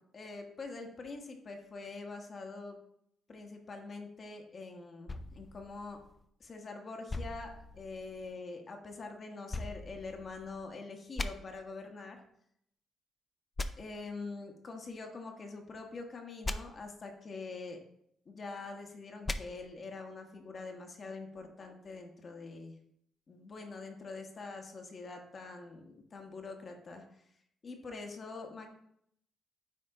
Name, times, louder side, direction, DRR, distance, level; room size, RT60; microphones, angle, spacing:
voice 1, 0.1-2.8 3.3-6.0 6.4-12.2 13.8-17.8 18.3-22.7 23.3-27.0 27.6-28.7, left 3 dB, 45° left, 3 dB, 1.1 m, -44 dB
sound 1, 5.1-6.5 7.1-8.3 9.5-10.7 11.2-11.3 13.6-13.7 16.4-16.6 19.2-19.4, left 2 dB, 25° left, 0.5 m, -39 dB
9.3 x 3.6 x 3.7 m, 0.73 s
cardioid pair, 90°, 0 cm